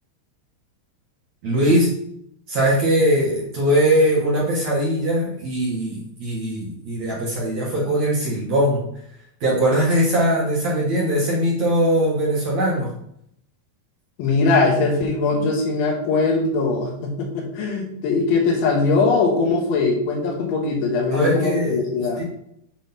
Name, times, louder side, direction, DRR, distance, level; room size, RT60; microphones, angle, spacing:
voice 1, 1.4-1.9 2.5-8.8 9.4-12.9 21.1-21.8 22.2-22.3, equal, 60° right, -5 dB, 1.8 m, -20 dB
voice 2, 14.2-22.2, left 3 dB, 75° left, -1 dB, 3.7 m, -21 dB
8.0 x 3.7 x 5.9 m, 0.71 s
omnidirectional pair, 5.4 m